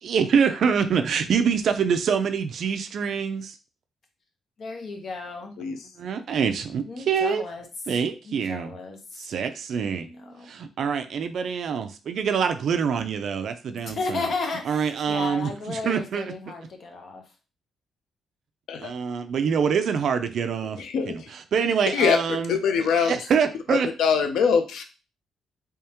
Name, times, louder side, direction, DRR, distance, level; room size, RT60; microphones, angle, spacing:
voice 1, 0.0-3.6 6.0-7.4 7.9-8.7 9.2-10.1 10.4-14.3 14.6-16.3 18.8-22.6 23.0-23.9, right 6 dB, 50° right, 8 dB, 0.4 m, -25 dB
voice 2, 4.6-5.5 6.9-7.6 8.5-9.0 9.9-10.5 13.8-17.2, left 4 dB, 40° left, 3 dB, 0.9 m, -33 dB
voice 3, 5.6-5.9 15.2-15.3 18.7-18.9 20.8-21.3 21.9-22.2 22.5-23.1 23.7-24.8, left 6 dB, 75° left, 6 dB, 0.6 m, -23 dB
3.5 x 3.4 x 2.9 m, 0.32 s
cardioid pair, 170°, 0 cm